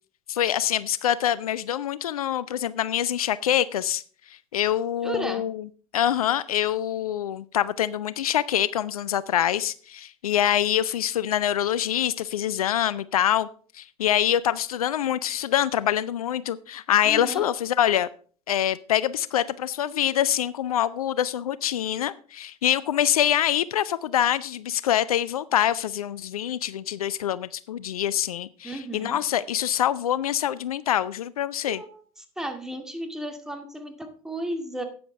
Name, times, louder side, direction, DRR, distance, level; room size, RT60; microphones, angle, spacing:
voice 1, 0.3-4.0 4.5-5.7 5.9-13.5 13.7-18.1 18.5-31.8, left 11 dB, 75° left, 0.5 m, -25 dB
voice 2, 5.0-5.4 17.0-17.5 28.6-29.2 31.7-34.8, equal, 5° right, 2.2 m, -34 dB
13.0 x 9.3 x 3.4 m
figure-of-eight pair, 80°, 19 cm